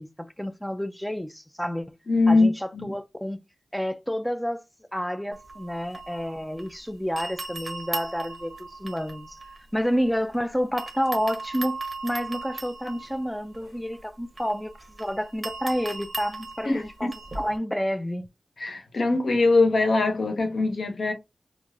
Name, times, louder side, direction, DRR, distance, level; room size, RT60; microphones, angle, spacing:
voice 1, 0.0-1.9 2.3-3.4 3.7-4.6 4.9-9.4 9.7-11.8 12.0-18.3, equal, 5° left, 0.4 m, -29 dB
voice 2, 2.1-2.9 16.6-16.8 18.6-21.1, left 3 dB, 75° left, 0.7 m, -22 dB
sound 1, 5.3-6.8 7.2-10.4 10.8-17.6, right 3 dB, 45° right, 0.8 m, -38 dB
3.1 x 2.5 x 2.4 m
cardioid pair, 55°, 0 cm